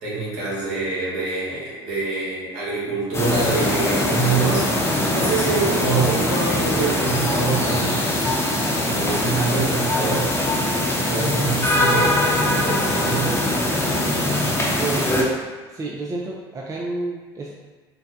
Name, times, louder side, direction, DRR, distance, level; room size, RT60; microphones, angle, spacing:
voice 1, 0.0-8.2 8.8-10.3 11.1-13.3, right 4 dB, 65° right, -7 dB, 1.4 m, -25 dB
sound 1, 3.1-15.2, left 1 dB, 20° left, 0.8 m, -22 dB
voice 2, 14.8-15.4 15.7-17.5, right 2 dB, 25° right, -2 dB, 0.5 m, -30 dB
3.9 x 2.1 x 2.7 m, 1.3 s
hypercardioid pair, 65°, 12 cm